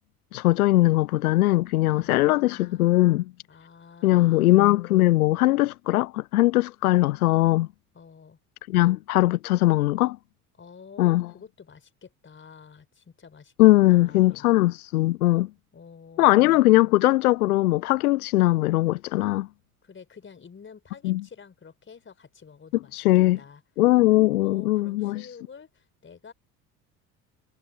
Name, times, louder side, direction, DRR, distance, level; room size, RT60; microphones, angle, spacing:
voice 1, 0.3-3.2 4.0-7.7 8.7-10.2 11.0-11.3 13.6-15.5 16.2-19.5 21.0-21.2 22.9-23.4 23.8-25.3, left 17 dB, 65° left, 0.8 m, -20 dB
voice 2, 1.9-3.0 3.5-4.5 7.9-8.4 10.5-13.5 13.9-14.5 15.7-16.4 19.8-23.6 24.4-26.3, left 6 dB, 25° left, 4.8 m, -48 dB
figure-of-eight pair, 65°, 46 cm